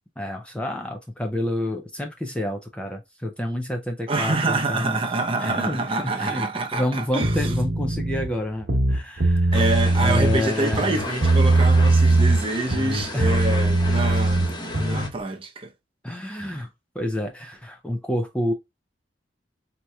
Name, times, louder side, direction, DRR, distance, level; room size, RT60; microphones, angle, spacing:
voice 1, 0.2-5.0 5.4-9.6 10.0-10.8 13.1-13.5 16.0-16.7 16.9-18.5, left 1 dB, 5° left, 0.4 m, -28 dB
voice 2, 4.1-7.5 9.5-15.7 16.4-16.6, right 2 dB, 30° right, 0.7 m, -26 dB
sound 1, 7.2-8.3 8.6-10.4 10.7-12.4 12.7-15.1, right 2 dB, 65° right, 1.0 m, -20 dB
sound 2, 9.5-15.1, left 2 dB, 25° left, 0.8 m, -34 dB
4.3 x 2.8 x 2.3 m
head